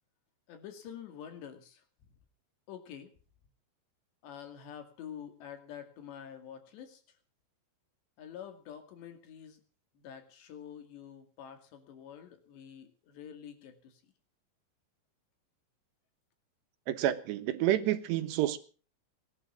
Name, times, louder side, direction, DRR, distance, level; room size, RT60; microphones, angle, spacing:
voice 1, 0.5-1.8 2.7-3.1 4.2-7.0 8.2-9.6 10.0-14.1, left 9 dB, 80° left, 4.5 m, -47 dB
voice 2, 16.9-18.6, right 13 dB, 80° right, 3.4 m, -29 dB
20.0 x 11.0 x 6.1 m
omnidirectional pair, 4.9 m